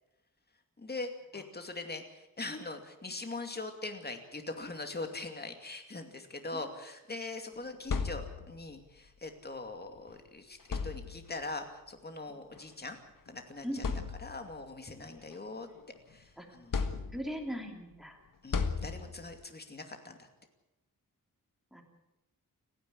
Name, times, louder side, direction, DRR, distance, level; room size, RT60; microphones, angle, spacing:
voice 1, 0.8-13.0 13.3-13.8 14.2-15.7 16.1-16.8 18.4-20.3, left 3 dB, 30° left, 6 dB, 2.5 m, -42 dB
sound 1, 7.6-8.7 10.0-10.1 10.6-11.5 12.6-12.7 13.3-13.4 13.8-14.6 15.1-16.1 16.7-17.5 18.5-19.4, left 5 dB, 65° left, 1.6 m, -36 dB
voice 2, 13.6-14.0 16.4-16.5 17.1-18.2 21.7-21.8, equal, ahead, 3 dB, 3.2 m, -39 dB
29.5 x 10.5 x 8.7 m, 0.93 s
wide cardioid pair, 150°, 35 cm